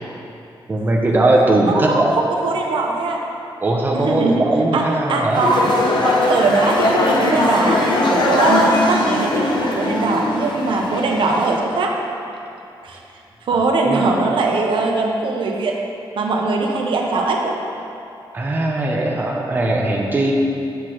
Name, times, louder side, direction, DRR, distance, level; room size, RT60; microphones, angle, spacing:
voice 1, 0.7-2.1 3.6-5.4 13.5-14.2 18.3-20.3, right 2 dB, 20° right, -2 dB, 0.6 m, -19 dB
voice 2, 1.7-3.3 3.9-4.4 4.7-4.8 5.1-5.6 6.0-11.9 12.8-13.0 13.5-15.8 16.2-17.6, right 3 dB, 75° right, 1 dB, 0.7 m, -20 dB
sound 1, 5.3-11.6, left 2 dB, 60° left, 0.8 m, -20 dB
8.1 x 6.1 x 3.0 m, 2.6 s
wide cardioid pair, 180°, 9 cm